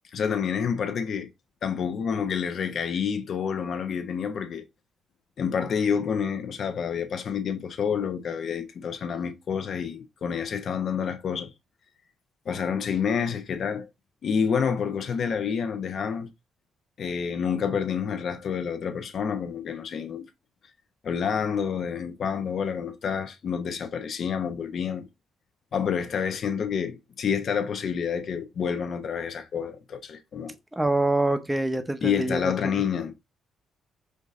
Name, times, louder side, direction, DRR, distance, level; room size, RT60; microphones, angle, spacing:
voice 1, 0.1-1.3 1.6-4.6 5.4-11.5 12.5-13.9 14.2-16.3 17.0-20.3 21.0-25.0 25.7-30.5 32.0-33.1, left 7 dB, 60° left, 0.9 m, -28 dB
voice 2, 30.8-32.8, right 2 dB, 10° right, 0.7 m, -25 dB
5.0 x 2.7 x 3.6 m
cardioid pair, 90°, 0 cm